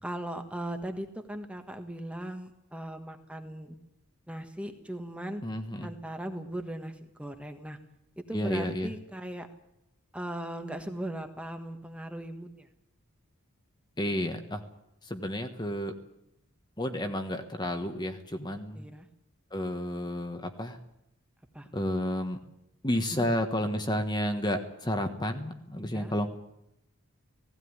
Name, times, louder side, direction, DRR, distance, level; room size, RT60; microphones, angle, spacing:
voice 1, 0.0-3.8 4.3-5.4 5.8-7.8 8.3-9.5 10.1-12.7 18.7-19.1 21.5-21.7 23.1-23.2 25.9-26.1, right 1 dB, 5° right, 6 dB, 1.4 m, -38 dB
voice 2, 5.4-5.9 8.3-8.9 14.0-14.6 15.0-16.0 16.8-18.9 19.5-20.8 21.7-22.4 22.8-26.3, left 1 dB, 20° left, 6 dB, 1.3 m, -31 dB
17.5 x 16.5 x 9.7 m, 0.84 s
head